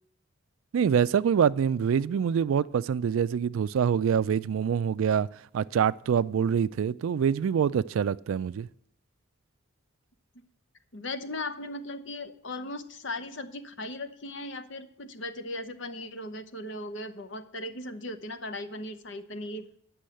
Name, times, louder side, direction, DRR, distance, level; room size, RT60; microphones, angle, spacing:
voice 1, 0.7-5.3 5.5-8.7, right 7 dB, 75° right, 0.3 m, -25 dB
voice 2, 10.9-19.6, left 1 dB, 60° left, 0.8 m, -37 dB
10.0 x 6.3 x 7.6 m
head